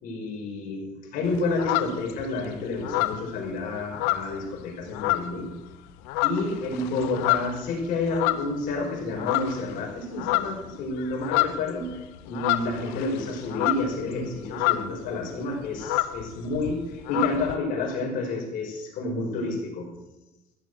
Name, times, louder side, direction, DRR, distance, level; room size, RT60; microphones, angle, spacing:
voice 1, 0.0-5.5 6.2-12.0 12.3-19.9, left 2 dB, 60° left, 0 dB, 5.2 m, -30 dB
sound 1, 1.2-2.4 2.8-4.6 4.9-5.5 5.9-8.8 9.2-9.7 10.0-15.1 15.3-15.4 15.7-17.6, left 15 dB, 80° left, 1.0 m, -28 dB
14.5 x 10.5 x 6.3 m, 0.98 s
cardioid pair, 125°, 16 cm